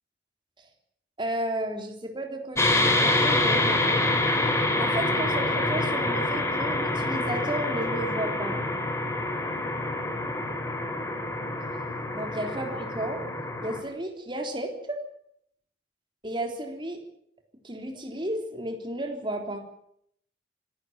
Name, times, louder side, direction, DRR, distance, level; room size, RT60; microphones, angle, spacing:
voice 1, 1.2-3.8 4.8-8.6 12.1-13.2 13.6-15.0 16.2-17.0 17.6-19.6, right 1 dB, 25° right, 3 dB, 3.7 m, -33 dB
sound 1, 2.6-13.8, left 2 dB, 15° left, 3.7 m, -26 dB
25.5 x 13.5 x 9.4 m, 0.71 s
head